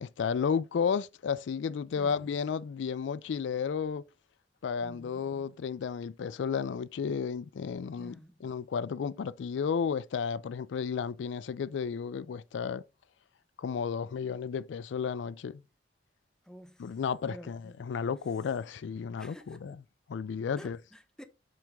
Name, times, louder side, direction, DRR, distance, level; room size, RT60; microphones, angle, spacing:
voice 1, 0.0-4.1 4.6-8.1 8.4-12.8 13.6-15.6 16.8-19.7 20.1-20.8, left 6 dB, 90° left, 0.4 m, -33 dB
voice 2, 2.0-2.3 4.8-5.4 8.0-8.6 16.4-17.0 17.3-17.9 19.2-19.8 20.6-21.2, equal, 5° left, 0.8 m, -51 dB
7.6 x 3.4 x 5.1 m
head